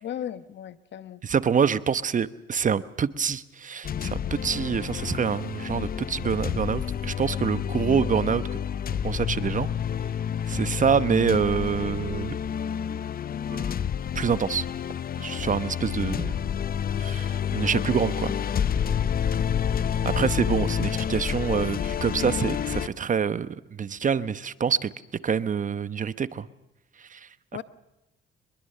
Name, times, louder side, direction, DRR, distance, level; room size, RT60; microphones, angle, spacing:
voice 1, 0.0-1.2 17.8-18.0 27.5-27.6, left 10 dB, 65° left, 14 dB, 1.1 m, -36 dB
voice 2, 1.2-8.4 9.0-9.7 10.5-12.4 13.5-13.7 14.1-14.7 15.2-16.3 17.0-18.3 20.0-24.9 25.2-26.5 27.0-27.3, right 7 dB, 40° right, 15 dB, 1.0 m, -26 dB
sound 1, 3.8-22.9, left 8 dB, 50° left, 0.8 m, -29 dB
24.5 x 21.5 x 6.7 m, 0.94 s
cardioid pair, 90°, 20 cm